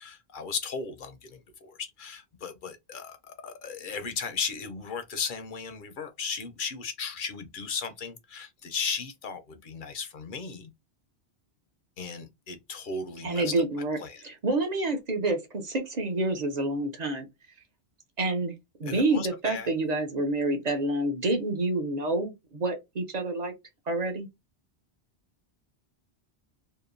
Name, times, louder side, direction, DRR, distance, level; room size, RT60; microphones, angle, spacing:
voice 1, 0.0-10.7 12.0-13.6 14.0-14.2 18.9-19.7, left 5 dB, 60° left, 0.6 m, -36 dB
voice 2, 13.2-14.0 14.2-17.3 18.2-18.5 18.8-23.5 23.9-24.3, right 2 dB, 50° right, 0.6 m, -28 dB
2.8 x 2.1 x 2.4 m
omnidirectional pair, 1.1 m